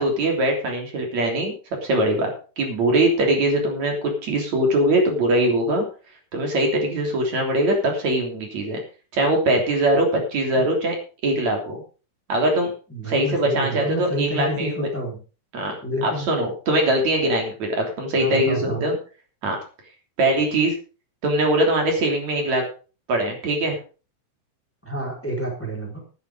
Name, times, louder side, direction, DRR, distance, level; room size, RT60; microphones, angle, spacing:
voice 1, 0.0-1.6 1.8-2.3 2.6-5.9 6.3-8.8 9.1-10.9 11.2-11.8 12.3-12.7 13.1-14.9 15.5-15.7 16.0-19.0 19.4-19.6 20.2-20.7 21.2-22.6 23.1-23.8, right 1 dB, 65° right, 2 dB, 4.6 m, -21 dB
voice 2, 12.9-15.2 15.8-16.3 18.2-18.9 24.8-26.0, right 1 dB, 5° left, 0 dB, 3.9 m, -29 dB
12.0 x 11.0 x 5.1 m, 0.36 s
omnidirectional pair, 3.5 m